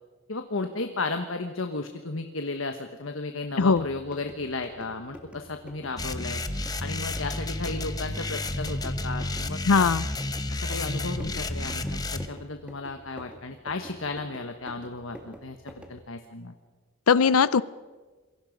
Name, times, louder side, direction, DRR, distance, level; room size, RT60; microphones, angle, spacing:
voice 1, 0.3-6.4 6.8-9.9 10.5-16.5, left 3 dB, 65° left, 6 dB, 1.3 m, -34 dB
sound 1, 3.4-16.1, equal, 5° right, 2.1 m, -48 dB
sound 2, 6.0-12.3, left 2 dB, 20° left, 0.9 m, -31 dB
voice 2, 9.7-10.0 17.1-17.6, left 5 dB, 80° left, 17 dB, 0.6 m, -19 dB
27.0 x 23.0 x 5.2 m, 1.4 s
head